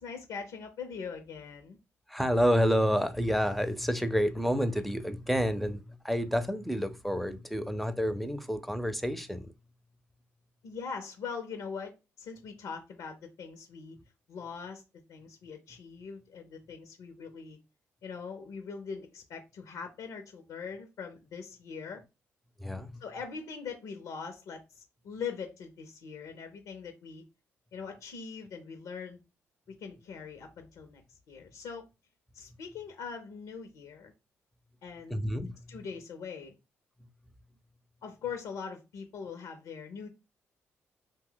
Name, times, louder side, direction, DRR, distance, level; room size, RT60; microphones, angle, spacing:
voice 1, 0.0-1.8 10.6-14.0 14.3-14.8 15.1-17.6 18.0-22.0 23.0-27.2 27.7-29.2 29.7-31.9 32.3-34.1 34.8-35.2 35.7-36.6 38.0-40.1, left 6 dB, 75° left, 0.6 m, -42 dB
voice 2, 2.1-9.5 22.6-23.0 35.1-35.5, equal, ahead, 0.5 m, -29 dB
2.7 x 2.1 x 3.8 m
hypercardioid pair, 50°, 6 cm